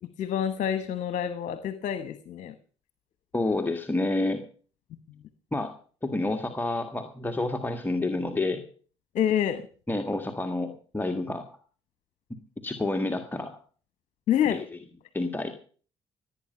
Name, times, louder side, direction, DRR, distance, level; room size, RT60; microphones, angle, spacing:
voice 1, 0.0-2.5 5.1-5.2 9.1-9.6 14.3-14.6, left 9 dB, 65° left, 12 dB, 1.1 m, -27 dB
voice 2, 3.3-4.4 5.5-5.7 6.0-8.6 9.9-11.4 12.6-13.5 14.5-14.6 15.1-15.5, left 2 dB, 15° left, 5 dB, 1.9 m, -29 dB
16.0 x 9.0 x 6.8 m, 0.41 s
hypercardioid pair, 55°, 14 cm